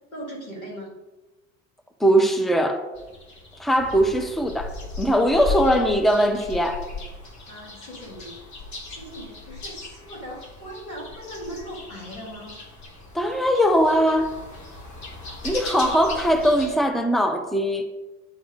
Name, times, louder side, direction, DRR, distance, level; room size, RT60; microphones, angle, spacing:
voice 1, 0.1-0.9 7.5-8.3 8.9-12.6, equal, 90° left, -4 dB, 2.2 m, -39 dB
voice 2, 2.0-2.9 3.6-6.8 13.1-14.4 15.4-17.8, equal, ahead, 4 dB, 0.8 m, -21 dB
sound 1, 2.9-16.8, left 3 dB, 45° left, 1.8 m, -37 dB
9.6 x 3.6 x 4.8 m, 1.1 s
figure-of-eight pair, 65°, 40 cm